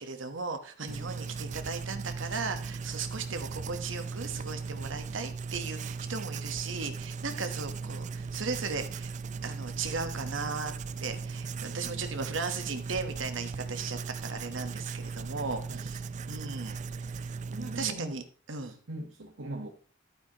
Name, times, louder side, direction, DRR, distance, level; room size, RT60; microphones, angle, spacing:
voice 1, 0.0-9.1 9.4-10.7 11.0-16.0 16.3-16.8 17.1-17.3 17.8-18.2 18.5-18.8, right 4 dB, 70° right, 7 dB, 1.2 m, -36 dB
Writing, 0.9-17.9, right 4 dB, 40° right, 0.4 m, -38 dB
voice 2, 11.6-12.0 15.7-15.9 17.5-18.2 18.6-19.7, right 1 dB, 90° right, 1 dB, 1.3 m, -41 dB
11.5 x 9.3 x 3.0 m, 0.39 s
head